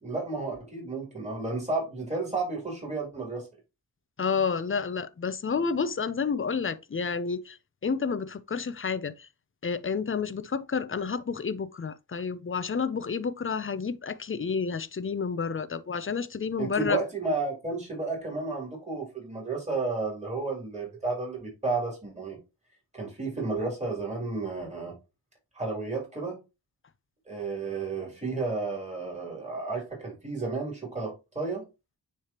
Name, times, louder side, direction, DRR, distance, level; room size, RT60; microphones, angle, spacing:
voice 1, 0.0-3.5 16.6-22.4 22.9-25.0 25.6-26.4 27.3-31.6, right 3 dB, 15° right, 3.6 m, -32 dB
voice 2, 4.2-7.6 7.8-9.3 9.6-17.0, left 5 dB, 30° left, 0.6 m, -30 dB
9.6 x 3.4 x 2.9 m
cardioid pair, 70°, 41 cm